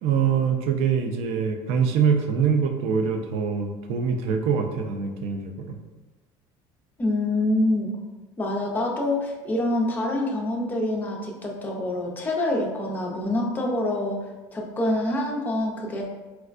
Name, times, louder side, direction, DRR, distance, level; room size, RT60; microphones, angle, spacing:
voice 1, 0.0-5.8, right 6 dB, 65° right, 5 dB, 0.4 m, -24 dB
voice 2, 7.0-7.9 8.4-14.3 14.5-16.1, left 1 dB, 15° left, -1 dB, 0.5 m, -26 dB
4.4 x 2.1 x 2.4 m, 1.2 s
cardioid pair, 150°, 11 cm